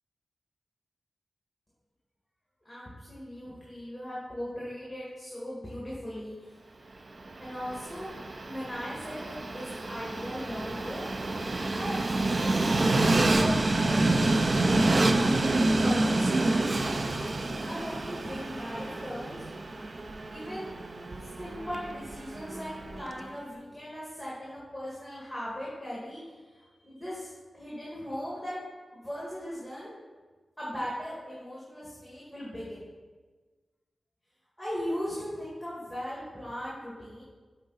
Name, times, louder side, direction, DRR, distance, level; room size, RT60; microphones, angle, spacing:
voice 1, 2.7-6.6 6.9-7.0 7.4-8.1 8.5-11.1 11.7-13.6 13.8-16.7 17.6-19.5 20.3-28.6 28.9-29.9 30.6-32.9 34.6-37.2, equal, ahead, -7 dB, 1.7 m, -38 dB
Train, 7.2-23.3, right 2 dB, 45° right, 0.4 m, -28 dB
9.1 x 4.0 x 4.0 m, 1.4 s
wide cardioid pair, 100°, 0 cm